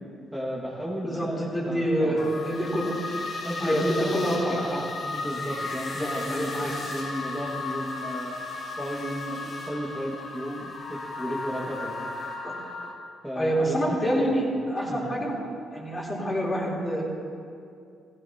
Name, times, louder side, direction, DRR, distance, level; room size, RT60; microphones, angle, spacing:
voice 1, 0.3-2.4 2.9-3.0 3.4-4.8 5.1-8.4 8.8-12.1 13.2-14.5 14.9-15.1, equal, ahead, -6 dB, 1.8 m, -34 dB
voice 2, 1.5-2.8 3.6-4.9 6.0-6.7 12.4-12.5 13.3-15.3 15.7-17.0, equal, 25° left, -4 dB, 3.4 m, -27 dB
sound 1, 2.2-12.9, left 3 dB, 55° left, 2.1 m, -35 dB
16.0 x 13.0 x 2.8 m, 2.4 s
cardioid pair, 90°, 0 cm